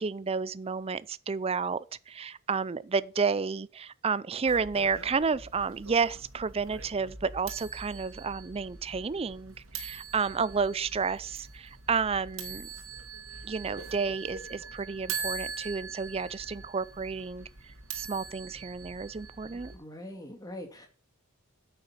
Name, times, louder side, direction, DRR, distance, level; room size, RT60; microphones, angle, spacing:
voice 1, 0.0-12.7 13.4-17.5 17.9-19.7, right 5 dB, 30° right, 0.4 m, -31 dB
sound 1, 4.5-19.8, right 5 dB, 75° right, 2.5 m, -42 dB
voice 2, 19.4-20.9, left 1 dB, 15° left, 2.1 m, -43 dB
9.2 x 8.0 x 5.6 m
head